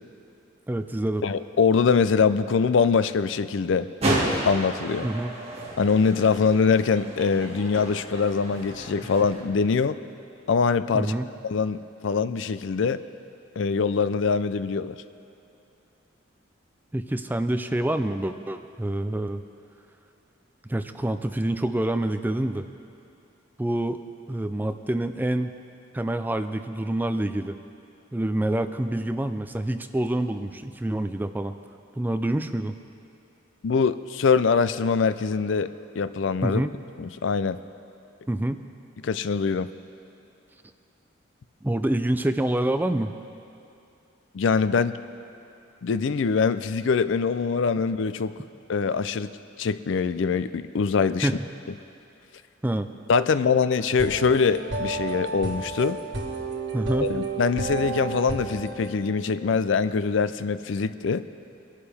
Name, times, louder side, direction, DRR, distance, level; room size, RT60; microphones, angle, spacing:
voice 1, 0.7-1.2 5.0-5.3 10.9-11.3 16.9-19.4 20.7-22.7 23.6-24.0 24.3-25.5 25.9-27.6 28.1-31.5 32.0-32.7 36.4-36.8 38.3-38.6 41.6-43.1 51.2-51.4 52.6-52.9 56.7-57.1, right 1 dB, 10° right, 9 dB, 0.3 m, -27 dB
voice 2, 1.2-3.9 4.5-5.1 5.8-10.0 10.5-11.1 11.4-13.0 13.6-15.0 33.6-36.6 37.0-37.6 39.0-39.7 44.3-45.0 45.8-48.3 48.7-49.3 49.6-51.3 53.1-56.0 57.0-61.3, left 5 dB, 65° left, 13 dB, 0.4 m, -23 dB
sound 1, 4.0-9.4, right 1 dB, 30° right, 1.9 m, -31 dB
sound 2, 53.9-59.0, right 3 dB, 60° right, 1.7 m, -31 dB
22.5 x 11.5 x 3.4 m, 2.7 s
head